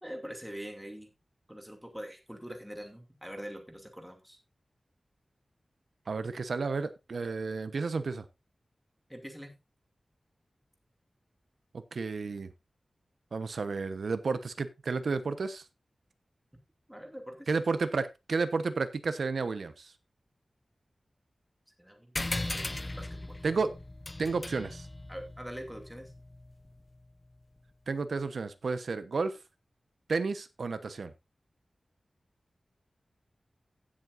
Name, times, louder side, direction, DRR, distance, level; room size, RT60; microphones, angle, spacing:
voice 1, 0.0-1.1 1.5-4.4 9.1-9.6 16.5-16.6 16.9-17.5 21.8-23.4 25.1-26.1, equal, 5° right, 2.5 m, -44 dB
voice 2, 6.1-8.2 11.9-12.5 13.3-15.6 17.5-19.9 23.4-23.7 24.2-24.9 27.9-29.3 30.1-31.1, right 4 dB, 80° right, 1.0 m, -32 dB
sound 1, 22.2-27.1, left 2 dB, 30° left, 0.7 m, -38 dB
16.0 x 7.6 x 2.6 m
wide cardioid pair, 85°, 0 cm